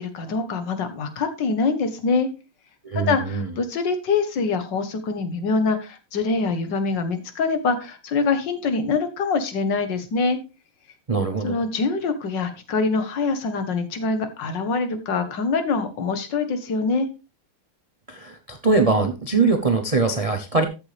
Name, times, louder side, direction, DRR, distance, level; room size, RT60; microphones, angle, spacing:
voice 1, 0.0-2.3 2.9-10.4 11.4-17.1, left 4 dB, 60° left, 9 dB, 2.0 m, -24 dB
voice 2, 2.8-3.5 11.1-11.6 18.1-20.6, right 3 dB, 45° right, 6 dB, 0.4 m, -22 dB
13.5 x 7.0 x 3.4 m, 0.28 s
omnidirectional pair, 2.3 m